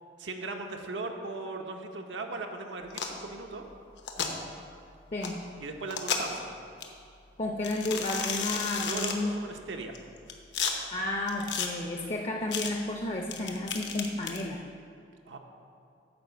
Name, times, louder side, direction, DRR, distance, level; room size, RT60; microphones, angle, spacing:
voice 1, 0.2-3.6 5.6-6.4 8.9-9.9 15.3-15.4, right 3 dB, 85° right, 3 dB, 0.8 m, -38 dB
sound 1, 2.9-3.2 4.0-4.3 5.2-5.3 5.9-6.4 6.8-6.9 7.6-9.2 9.9-10.7 11.3-11.7 12.5-12.7 13.3-14.4, left 6 dB, 75° left, 0.9 m, -32 dB
voice 2, 7.4-9.3 10.9-14.6, left 1 dB, 35° left, 2 dB, 0.5 m, -32 dB
9.5 x 4.7 x 6.8 m, 2.5 s
head